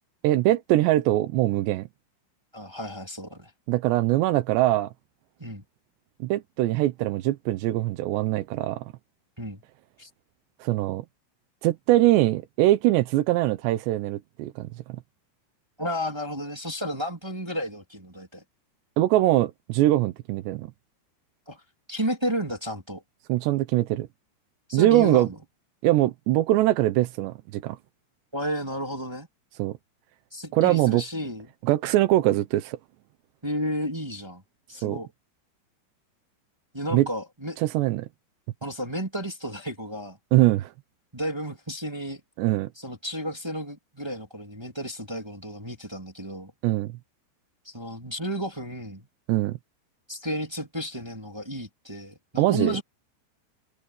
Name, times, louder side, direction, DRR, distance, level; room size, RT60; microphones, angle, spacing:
voice 1, 0.2-1.9 3.7-4.9 6.2-8.8 10.6-11.1 11.6-15.0 19.0-20.7 23.3-24.1 24.7-25.3 25.8-27.8 29.6-29.8 30.5-31.0 31.6-32.8 34.8-35.0 36.9-37.1 37.6-38.1 40.3-40.7 42.4-42.7 46.6-46.9 49.3-49.6 52.4-52.8, right 16 dB, 75° right, 2.7 m, -22 dB
voice 2, 2.5-3.5 5.4-5.6 9.4-9.6 10.0-10.1 15.8-18.4 21.5-21.6 21.9-23.0 24.7-25.3 28.3-29.3 30.3-31.4 33.4-34.4 34.7-35.1 36.7-37.6 38.6-40.2 41.1-42.2 42.7-46.5 47.6-49.1 50.1-52.8, equal, 10° right, 1.8 m, -32 dB
omnidirectional pair, 6.0 m